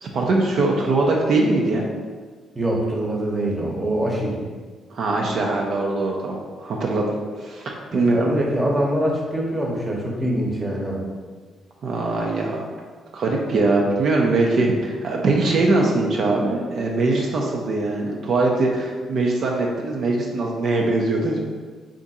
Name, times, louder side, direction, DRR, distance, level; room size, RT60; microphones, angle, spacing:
voice 1, 0.0-1.9 4.9-7.1 7.4-8.3 11.8-12.6 13.1-21.4, right 2 dB, 65° right, -1 dB, 0.5 m, -22 dB
voice 2, 2.5-4.4 7.9-11.0, right 1 dB, 20° right, -2 dB, 0.8 m, -24 dB
3.4 x 2.5 x 4.0 m, 1.5 s
cardioid pair, 80°, 0 cm